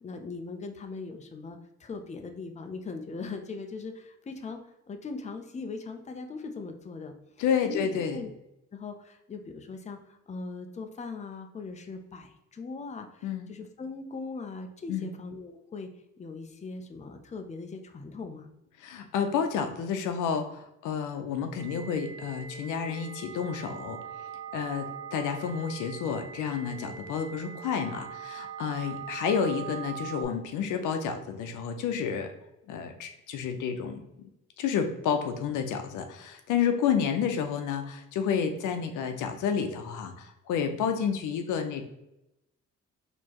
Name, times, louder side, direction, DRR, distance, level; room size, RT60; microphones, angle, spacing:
voice 1, 0.0-4.6 4.9-8.3 8.7-15.9 16.2-18.5, left 4 dB, 25° left, 5 dB, 0.6 m, -40 dB
voice 2, 7.4-8.2 13.2-13.5 14.9-15.1 18.8-24.0 24.5-32.3 32.7-34.3 34.6-41.8, left 7 dB, 85° left, 6 dB, 0.6 m, -30 dB
sound 1, 21.6-30.2, right 8 dB, 40° right, 1.5 m, -42 dB
4.4 x 2.9 x 2.9 m, 0.87 s
cardioid pair, 90°, 30 cm